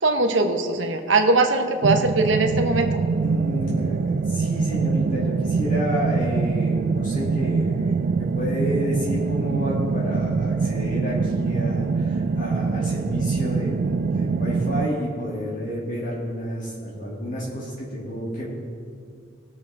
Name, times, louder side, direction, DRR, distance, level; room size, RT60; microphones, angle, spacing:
voice 1, 0.0-3.0, right 3 dB, 70° right, 5 dB, 1.1 m, -21 dB
sound 1, 1.8-14.9, right 4 dB, 50° right, 0.3 m, -24 dB
voice 2, 3.2-18.5, equal, 45° left, -6 dB, 2.4 m, -30 dB
20.0 x 6.9 x 3.5 m, 2.3 s
head